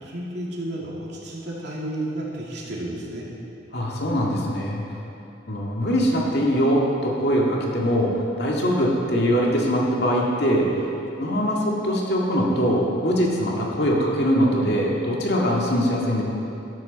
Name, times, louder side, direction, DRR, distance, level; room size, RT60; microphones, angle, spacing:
voice 1, 0.0-3.2, right 1 dB, 65° right, -4 dB, 2.5 m, -32 dB
voice 2, 3.7-4.8 5.5-10.8 11.2-16.2, equal, 60° left, -2 dB, 2.1 m, -22 dB
13.5 x 12.5 x 4.2 m, 2.7 s
head